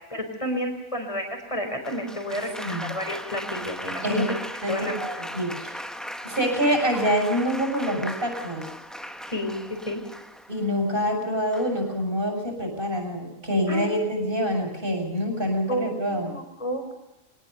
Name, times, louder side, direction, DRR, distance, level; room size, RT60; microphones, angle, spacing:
voice 1, 0.1-4.2 4.7-5.0 9.3-10.0 13.7-13.9 15.7-16.9, equal, 25° left, 4 dB, 4.7 m, -31 dB
Applause, 1.8-10.7 11.5-11.9, equal, ahead, 1.0 m, -37 dB
voice 2, 4.6-5.8 6.2-8.7 10.5-16.4, equal, 45° right, 3 dB, 7.0 m, -26 dB
24.0 x 19.5 x 6.9 m, 0.96 s
omnidirectional pair, 1.4 m